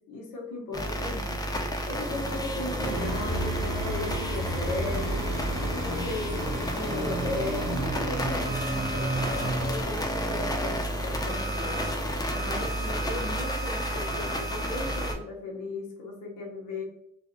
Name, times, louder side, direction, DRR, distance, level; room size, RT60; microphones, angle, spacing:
voice 1, 0.1-1.4 1.9-5.2 5.7-11.8 12.4-16.8, left 2 dB, 80° left, -1 dB, 0.8 m, -37 dB
sound 1, 0.7-15.2, equal, 15° left, 0.4 m, -31 dB
sound 2, 2.5-8.3, right 3 dB, 70° right, 0.6 m, -40 dB
sound 3, 2.8-9.8, right 1 dB, 20° right, 0.7 m, -32 dB
2.5 x 2.1 x 2.5 m, 0.75 s
cardioid pair, 90°, 30 cm